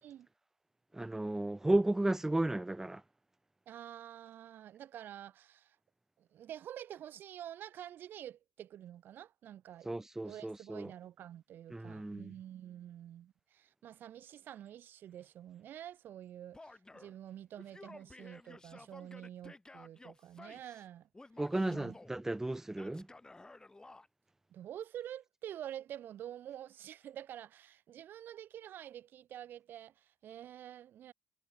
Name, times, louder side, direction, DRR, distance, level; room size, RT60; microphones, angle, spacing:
voice 1, 0.9-3.0 9.8-10.9 11.7-12.3 21.4-23.1, right 2 dB, 10° right, 0.6 m, -33 dB
voice 2, 3.7-5.8 6.2-9.9 10.3-21.1 21.5-22.0 24.5-31.1, right 11 dB, 65° right, 0.8 m, -48 dB
Male speech man speaking / Yell, 16.5-17.2 17.6-20.9 21.1-22.1 22.7-24.1, left 2 dB, 20° left, 7.1 m, -54 dB
supercardioid pair, 60°, 4 cm